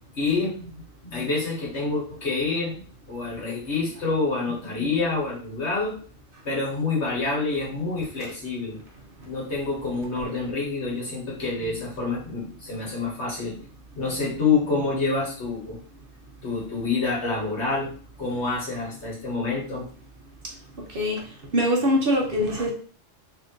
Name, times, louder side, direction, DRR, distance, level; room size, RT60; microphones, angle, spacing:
voice 1, 0.2-6.0 6.5-8.8 9.2-13.6 14.0-15.8 16.4-19.9, left 4 dB, 60° left, -4 dB, 1.7 m, -27 dB
voice 2, 21.5-22.7, equal, 50° right, 0 dB, 0.9 m, -23 dB
3.5 x 2.8 x 3.7 m, 0.44 s
omnidirectional pair, 1.3 m